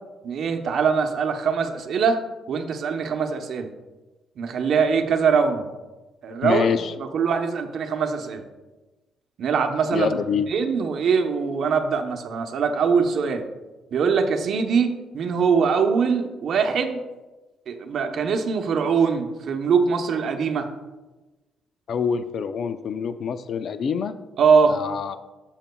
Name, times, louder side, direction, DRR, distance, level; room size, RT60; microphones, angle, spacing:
voice 1, 0.2-2.2 2.5-3.7 4.4-5.7 6.2-8.4 9.4-10.1 10.5-13.4 13.9-17.0 17.7-20.7 24.4-24.8, right 5 dB, 65° right, 5 dB, 0.9 m, -22 dB
voice 2, 6.4-6.9 9.9-10.5 21.9-24.1 24.7-25.2, left 6 dB, 60° left, 11 dB, 0.5 m, -25 dB
12.0 x 7.3 x 2.3 m, 1.2 s
cardioid pair, 105°, 0 cm